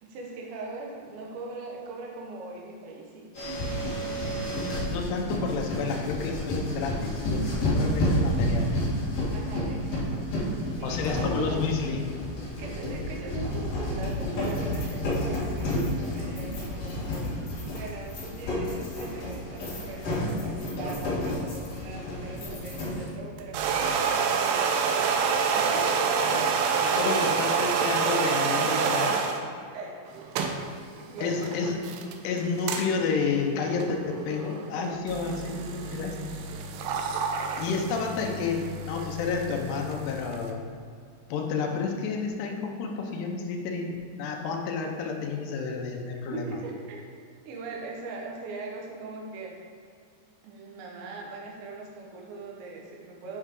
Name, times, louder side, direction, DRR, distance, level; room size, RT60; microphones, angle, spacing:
voice 1, 0.0-3.8 4.0-5.0 9.3-10.4 10.8-11.7 12.6-24.6 25.6-26.5 27.0-27.2 28.4-29.0 29.7-30.1 31.1-31.6 46.3-47.1 47.5-49.6 50.4-53.4, right 3 dB, 75° right, -1 dB, 3.3 m, -41 dB
sound 1, 3.3-23.2, left 1 dB, 50° left, 2.0 m, -30 dB
voice 2, 4.7-8.7 10.8-12.0 26.3-26.5 26.8-29.2 31.2-31.8 32.2-36.3 37.6-40.6 41.3-46.6, left 5 dB, 75° left, 2 dB, 2.5 m, -30 dB
Coffee machine - Full cycle, 23.4-29.4 30.1-40.5, right 5 dB, 90° right, 3.2 m, -28 dB
9.3 x 5.5 x 3.7 m, 2.2 s
omnidirectional pair, 5.5 m